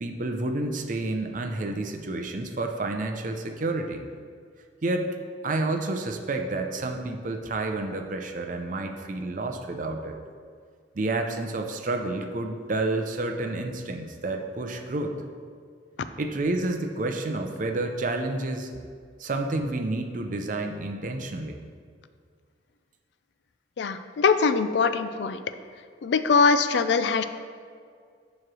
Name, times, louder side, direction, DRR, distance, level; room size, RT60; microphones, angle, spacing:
voice 1, 0.0-4.0 4.8-5.2 5.4-10.2 10.9-15.2 16.2-18.9 19.2-21.6, right 2 dB, 45° right, 5 dB, 0.5 m, -30 dB
voice 2, 23.8-25.4 26.0-27.2, left 5 dB, 65° left, 11 dB, 0.3 m, -22 dB
7.5 x 3.1 x 6.1 m, 2.1 s
head